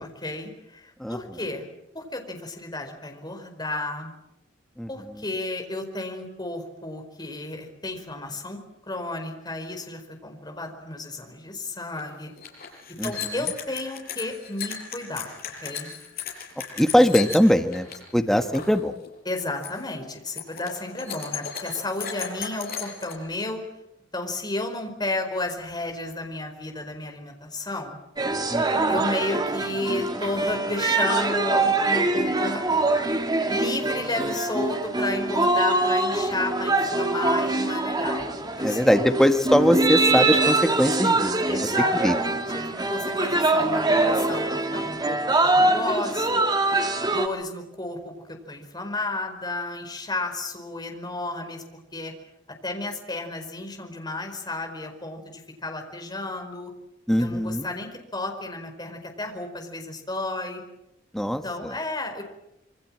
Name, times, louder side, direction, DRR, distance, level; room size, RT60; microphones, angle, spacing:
voice 1, 0.2-1.7 1.9-4.1 4.9-8.6 8.9-12.3 13.0-15.3 15.6-15.9 19.2-23.6 24.1-28.0 28.9-33.0 33.5-38.3 38.6-38.9 41.5-46.5 47.0-51.6 51.9-52.1 52.6-56.7 57.2-60.6 61.4-62.2, left 2 dB, 20° left, 4 dB, 4.8 m, -32 dB
voice 2, 4.8-5.2 13.0-13.5 16.8-17.9 18.1-18.9 28.5-29.0 38.6-41.7 42.0-42.2 57.1-57.7 61.1-61.7, equal, ahead, 6 dB, 1.6 m, -22 dB
sound 1, 11.9-12.0 12.3-18.0 18.3-18.8 19.0-19.3 19.6-19.9 20.3-23.1, left 7 dB, 50° left, 6.8 m, -35 dB
sound 2, 28.2-47.3, right 2 dB, 20° right, 2.2 m, -24 dB
27.0 x 24.5 x 7.6 m, 0.84 s
head